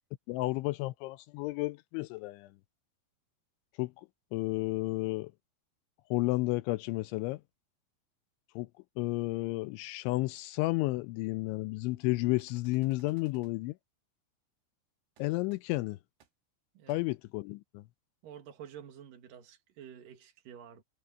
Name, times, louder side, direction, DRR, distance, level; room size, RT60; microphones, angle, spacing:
voice 1, 0.3-2.5 3.8-3.9 4.3-5.3 6.1-7.4 8.6-8.7 9.0-13.7 15.2-16.0 16.9-17.8, left 21 dB, 85° left, 2.8 m, -32 dB
sound 1, 12.4-13.5 15.2-15.3 15.5-15.6 16.2-16.3 16.9-17.0, right 8 dB, 70° right, 4.8 m, -64 dB
voice 2, 18.2-20.8, right 9 dB, 55° right, 3.1 m, -49 dB
omnidirectional pair, 5.7 m